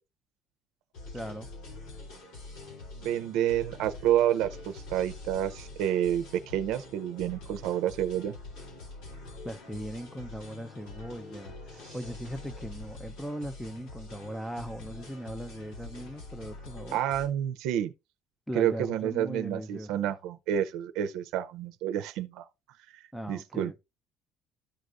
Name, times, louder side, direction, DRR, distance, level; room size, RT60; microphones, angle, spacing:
sound 1, 0.9-17.3, left 2 dB, 85° left, 3.8 m, -45 dB
voice 1, 1.1-1.5 9.4-17.0 18.5-20.1 23.1-23.8, equal, ahead, 0.7 m, -39 dB
voice 2, 2.9-8.4 16.9-17.9 18.5-22.5 23.3-23.8, right 11 dB, 85° right, 0.6 m, -29 dB
13.0 x 4.7 x 2.6 m
cardioid pair, 155°, 0 cm